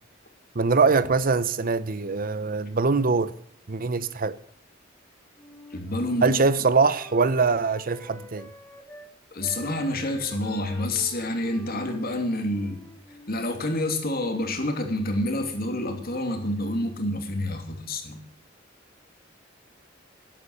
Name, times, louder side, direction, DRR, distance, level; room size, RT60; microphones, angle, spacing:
voice 1, 0.5-3.3 3.7-4.3 6.2-8.5, right 4 dB, 45° right, 0.8 m, -23 dB
Wind instrument woodwind instrument, 5.4-9.1 9.4-13.5, left 2 dB, 10° left, 2.1 m, -47 dB
voice 2, 5.7-6.4 9.3-12.8 13.3-18.2, left 1 dB, 50° left, 2.8 m, -28 dB
12.0 x 11.0 x 6.7 m
head